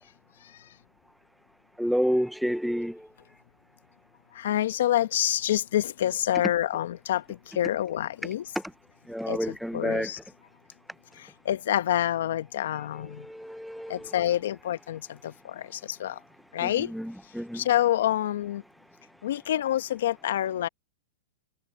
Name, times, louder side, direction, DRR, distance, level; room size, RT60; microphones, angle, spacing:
voice 1, 1.8-3.1 9.1-10.1 13.1-14.1 16.6-17.6, equal, ahead, 0.6 m, -29 dB
voice 2, 4.3-8.5 9.3-10.2 11.1-13.3 13.9-16.2 16.5-16.9 17.5-18.6 19.2-20.7, left 12 dB, 75° left, 1.1 m, -27 dB
hypercardioid pair, 135°, 0 cm